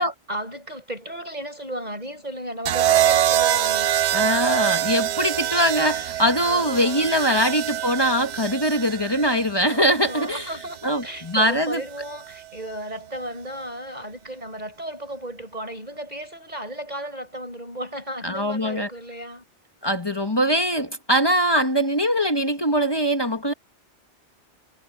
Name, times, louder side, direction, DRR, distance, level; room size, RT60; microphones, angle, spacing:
voice 1, 0.3-4.4 6.1-7.4 8.0-8.1 9.6-19.4, right 1 dB, 35° right, 7.1 m, -35 dB
sound 1, 2.7-10.8 12.0-12.4, right 11 dB, 75° right, 0.9 m, -24 dB
voice 2, 4.1-10.5 10.8-11.8 18.2-18.9 19.8-23.5, equal, 20° left, 1.3 m, -22 dB
omnidirectional pair, 1.2 m